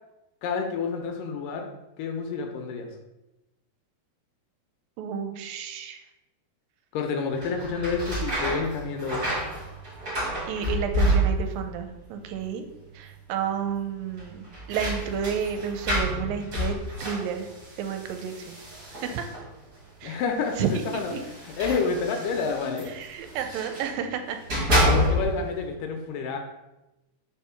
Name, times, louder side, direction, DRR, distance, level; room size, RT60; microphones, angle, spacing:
voice 1, 0.4-1.7 2.0-2.9 6.9-9.3 20.0-21.1 21.6-22.9 24.8-26.4, left 5 dB, 75° left, 4 dB, 2.2 m, -29 dB
voice 2, 5.0-6.0 10.5-12.7 12.9-17.5 17.8-18.6 18.9-19.3 20.0-20.2 20.6-21.2 22.9-24.4 24.7-25.0, right 7 dB, 80° right, 6 dB, 2.2 m, -31 dB
sound 1, 7.3-11.7 12.0-12.7 13.0-13.1 14.1-19.6 20.4-23.9 24.3-25.5, equal, 35° right, 1.9 m, -29 dB
4.9 x 4.6 x 5.7 m, 0.95 s
omnidirectional pair, 4.3 m